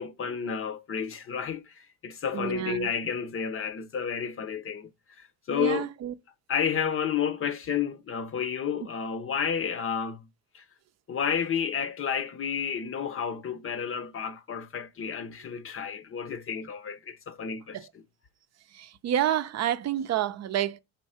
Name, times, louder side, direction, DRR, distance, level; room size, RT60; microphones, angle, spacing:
voice 1, 0.0-4.9 5.2-5.9 6.5-10.3 10.5-10.6 11.1-17.8, left 7 dB, 40° left, 0.7 m, -31 dB
voice 2, 2.3-2.9 5.5-6.1 17.7-17.9 18.7-20.8, right 11 dB, 50° right, 0.6 m, -29 dB
5.2 x 4.5 x 4.9 m
cardioid pair, 90°, 33 cm